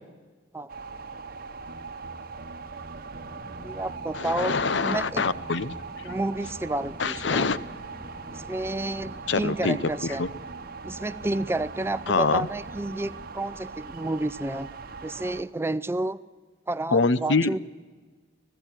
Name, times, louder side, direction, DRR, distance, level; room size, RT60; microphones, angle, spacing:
sound 1, 0.7-15.4, right 4 dB, 55° right, 1.0 m, -40 dB
sound 2, 3.1-10.4, left 1 dB, 25° left, 3.4 m, -48 dB
voice 1, 3.6-5.2 6.0-7.5 8.3-10.2 10.8-14.7 15.0-16.2 16.7-17.6, right 2 dB, 15° right, 15 dB, 0.5 m, -30 dB
voice 2, 4.1-6.1 7.0-7.6 9.3-9.8 10.0-10.3 12.1-12.5 16.9-17.6, left 4 dB, 70° left, 16 dB, 0.8 m, -25 dB
20.0 x 16.0 x 9.0 m, 1.4 s
head